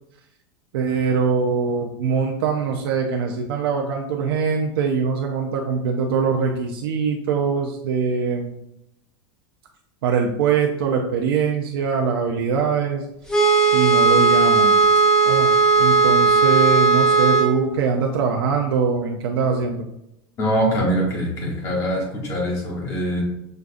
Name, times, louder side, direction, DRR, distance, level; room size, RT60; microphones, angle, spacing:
voice 1, 0.7-8.6 10.0-13.1 13.7-14.8 15.2-19.9, right 5 dB, 75° right, 1 dB, 0.5 m, -22 dB
sound 1, 13.3-17.5, right 4 dB, 5° left, 0.4 m, -16 dB
voice 2, 20.4-23.2, equal, 25° left, -2 dB, 1.0 m, -23 dB
6.4 x 2.4 x 2.5 m, 0.81 s
supercardioid pair, 180°, 12 cm